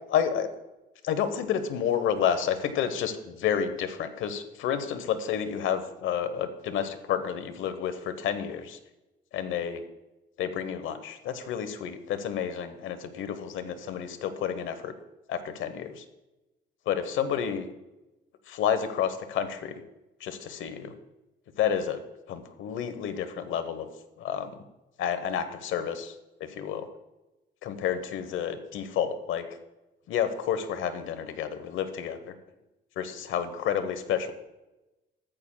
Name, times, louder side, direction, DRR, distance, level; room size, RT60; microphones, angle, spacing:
voice 1, 0.1-0.5 1.0-8.8 9.3-9.8 10.4-14.9 15.3-16.0 16.9-17.7 18.5-19.7 20.2-20.9 21.6-22.0 22.3-23.9 24.2-24.5 25.0-26.9 27.6-29.5 30.1-32.3 33.0-34.3, left 8 dB, 80° left, 10 dB, 0.9 m, -30 dB
14.0 x 8.7 x 2.2 m, 0.99 s
cardioid pair, 90°, 20 cm